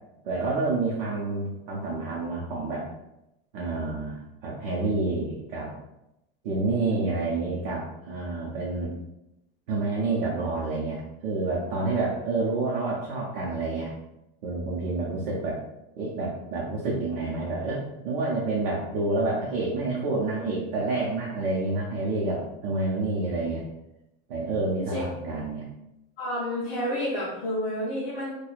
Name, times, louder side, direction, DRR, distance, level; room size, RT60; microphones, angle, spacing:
voice 1, 0.2-2.9 3.5-5.7 6.4-8.9 9.7-13.9 14.4-15.6 15.9-23.6 24.3-25.7, right 3 dB, 55° right, -4 dB, 0.7 m, -28 dB
voice 2, 24.7-25.0 26.2-28.3, left 1 dB, 35° left, -9 dB, 0.9 m, -30 dB
4.5 x 2.3 x 2.4 m, 0.90 s
supercardioid pair, 180°, 30 cm